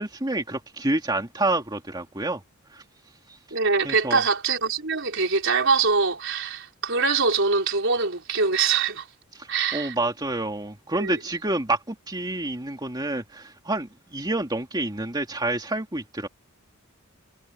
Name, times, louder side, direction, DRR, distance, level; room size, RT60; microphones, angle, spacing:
voice 1, 0.0-2.4 2.7-2.8 3.8-4.2 9.3-16.3, right 2 dB, 20° right, 2.6 m, -28 dB
voice 2, 3.5-9.1 9.5-9.9 10.9-11.2, right 4 dB, 60° right, 4.3 m, -23 dB
head